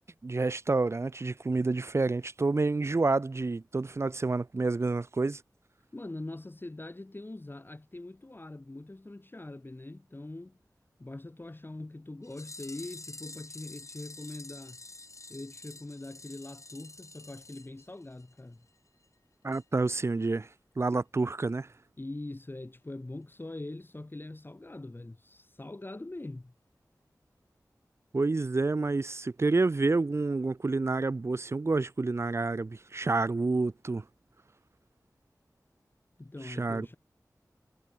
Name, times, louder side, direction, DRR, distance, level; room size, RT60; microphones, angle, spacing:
voice 1, 0.2-5.4 19.4-20.5 20.8-21.7 28.1-34.0 36.4-36.9, right 3 dB, 45° right, 0.6 m, -28 dB
voice 2, 5.9-10.6 11.0-14.8 15.3-18.6 22.0-26.5 36.2-37.0, left 2 dB, 30° left, 4.4 m, -43 dB
sound 1, 12.2-18.4 18.7-18.8 19.0-19.1 19.5-19.6 19.9-20.0, left 3 dB, 50° left, 3.0 m, -48 dB
wide cardioid pair, 75°, 7 cm